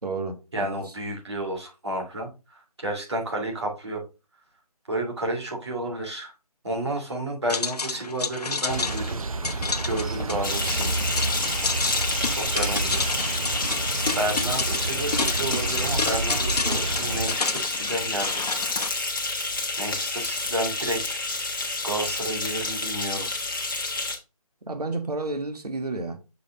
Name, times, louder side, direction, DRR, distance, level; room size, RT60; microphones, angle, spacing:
voice 1, 0.0-0.9 24.7-26.2, right 3 dB, 80° right, 1.5 m, -31 dB
voice 2, 0.5-4.0 4.9-6.3 6.6-9.2 9.8-10.9 12.2-13.1 14.1-18.6 19.8-21.2 21.8-23.3, right 1 dB, 45° right, 2.6 m, -31 dB
sound 1, 7.5-18.9, left 4 dB, 85° left, 0.9 m, -30 dB
sound 2, 8.7-17.4, right 3 dB, 60° right, 0.6 m, -30 dB
sound 3, 10.4-24.2, left 3 dB, 35° left, 1.3 m, -29 dB
6.6 x 3.9 x 3.8 m
figure-of-eight pair, 180°, 20 cm